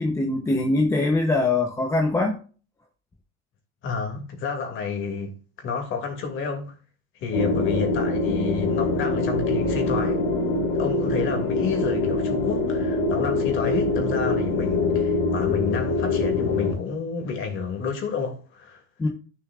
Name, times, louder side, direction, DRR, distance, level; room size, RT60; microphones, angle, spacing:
voice 1, 0.0-2.4 19.0-19.1, left 2 dB, 5° left, 0.7 m, -22 dB
voice 2, 3.8-6.8 7.1-18.8, left 5 dB, 30° left, 2.4 m, -30 dB
sound 1, 7.3-16.7, left 2 dB, 50° left, 3.1 m, -24 dB
13.0 x 6.7 x 2.4 m
supercardioid pair, 155°, 40 cm